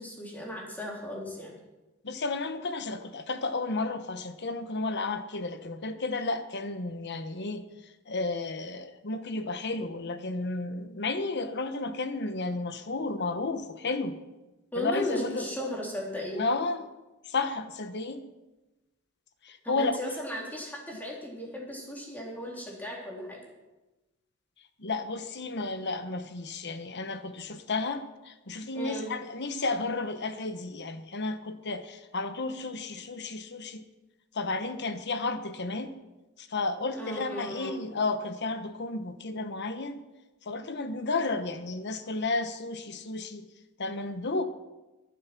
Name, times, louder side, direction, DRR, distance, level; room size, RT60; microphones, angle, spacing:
voice 1, 0.0-1.5 14.7-16.5 19.6-23.4 28.7-29.1 37.0-37.8, equal, 10° left, -3 dB, 3.6 m, -36 dB
voice 2, 2.0-7.6 8.1-14.2 14.8-15.5 16.4-16.8 17.3-18.2 19.4-19.9 24.8-33.8 34.3-35.9 36.4-40.0 40.5-43.5 43.8-44.4, left 3 dB, 55° left, 9 dB, 1.2 m, -32 dB
22.5 x 7.6 x 6.1 m, 1.1 s
head